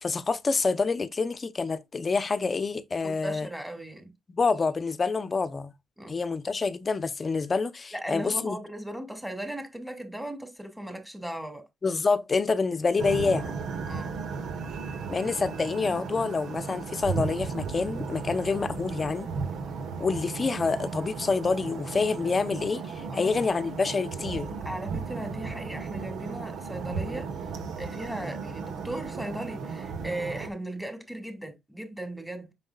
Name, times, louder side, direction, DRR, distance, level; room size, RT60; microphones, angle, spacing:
voice 1, 0.0-3.5 4.3-5.7 6.1-8.6 11.8-13.6 15.1-19.3 20.0-24.5, left 4 dB, 35° left, 0.8 m, -27 dB
voice 2, 3.0-4.1 6.0-6.1 7.9-11.6 13.9-14.2 23.1-23.3 24.6-27.3 27.8-32.5, right 1 dB, 5° right, 2.7 m, -37 dB
sound 1, 13.0-30.5, right 5 dB, 75° right, 1.4 m, -35 dB
7.6 x 6.2 x 2.4 m
cardioid pair, 105°, 0 cm